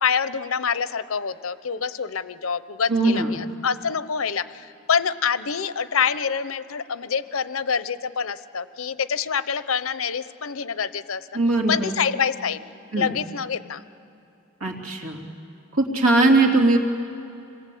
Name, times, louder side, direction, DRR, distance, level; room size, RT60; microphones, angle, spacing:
voice 1, 0.0-11.3 11.7-12.6 12.9-13.8, left 6 dB, 80° left, 14 dB, 0.8 m, -26 dB
voice 2, 2.9-3.3 11.3-12.0 12.9-13.1 14.6-15.2 15.7-16.8, right 2 dB, 85° right, 1 dB, 3.0 m, -20 dB
27.0 x 20.5 x 8.5 m, 2.9 s
head